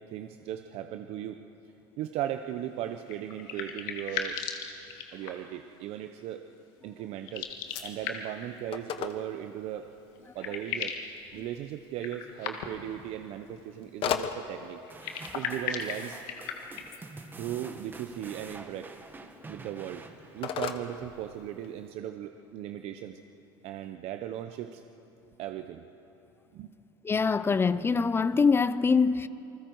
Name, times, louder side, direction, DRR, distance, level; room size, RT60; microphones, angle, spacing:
voice 1, 0.0-1.4 2.0-4.4 5.1-6.4 6.8-7.5 7.8-9.9 10.3-11.0 11.3-14.8 15.3-16.2 17.4-18.9 19.5-20.0 20.3-23.2 23.6-24.8 25.4-25.8 26.5-26.7, right 11 dB, 65° right, 0.8 m, -37 dB
sound 1, 3.0-5.6 7.2-8.5 9.8-9.9 10.2-11.1 12.0-12.9 14.9-17.0, left 7 dB, 85° left, 1.8 m, -37 dB
Telephone, 7.4-21.9, left 8 dB, 55° left, 1.2 m, -41 dB
sound 2, 14.9-21.4, right 3 dB, 15° right, 1.5 m, -48 dB
voice 2, 27.0-29.3, left 5 dB, 20° left, 0.5 m, -24 dB
28.0 x 20.5 x 4.7 m
supercardioid pair, 105°, 11 cm